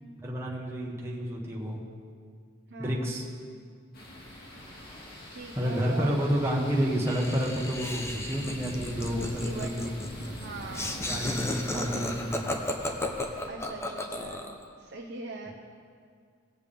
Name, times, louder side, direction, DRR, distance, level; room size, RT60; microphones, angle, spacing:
voice 1, 0.2-1.8 2.8-3.2 5.5-9.8 10.2-10.4 11.0-12.4, equal, 15° right, -4 dB, 1.4 m, -30 dB
voice 2, 2.7-3.1 5.3-6.2 8.8-9.9 10.2-11.0 11.5-12.2 13.5-14.4 14.8-15.5, right 3 dB, 55° right, 0 dB, 0.9 m, -41 dB
sound 1, 3.9-13.5, left 1 dB, 50° left, 1.9 m, -43 dB
Laughter, 7.1-14.6, left 1 dB, 15° left, 0.8 m, -34 dB
18.5 x 7.5 x 3.5 m, 2.1 s
head